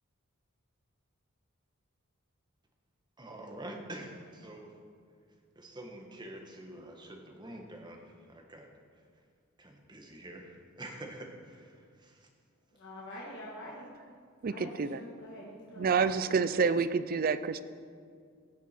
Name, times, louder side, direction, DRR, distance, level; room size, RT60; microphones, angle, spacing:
voice 1, 3.2-4.8 5.5-8.7 9.6-12.3, right 1 dB, 20° right, 2 dB, 1.2 m, -46 dB
voice 2, 12.7-13.9 14.5-16.1, equal, 55° left, -5 dB, 1.6 m, -45 dB
voice 3, 14.4-15.0 15.8-17.6, right 5 dB, 40° right, 14 dB, 0.4 m, -28 dB
16.5 x 7.2 x 4.4 m, 2.2 s
head